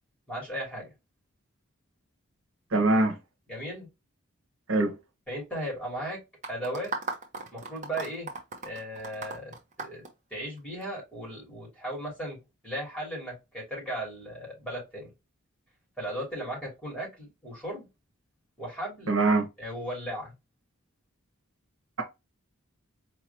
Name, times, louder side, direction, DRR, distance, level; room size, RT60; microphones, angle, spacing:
voice 1, 0.3-0.9 3.5-3.9 5.3-6.2 6.5-6.9 7.5-8.3 8.6-10.0 10.3-15.1 16.0-17.9 18.6-19.1 19.6-20.3, right 1 dB, 5° left, 2.9 m, -36 dB
voice 2, 2.7-3.2 4.7-4.9 19.1-19.5, right 2 dB, 85° right, 1.2 m, -23 dB
sound 1, 6.4-10.8, right 3 dB, 35° right, 1.0 m, -37 dB
4.7 x 3.0 x 2.9 m
head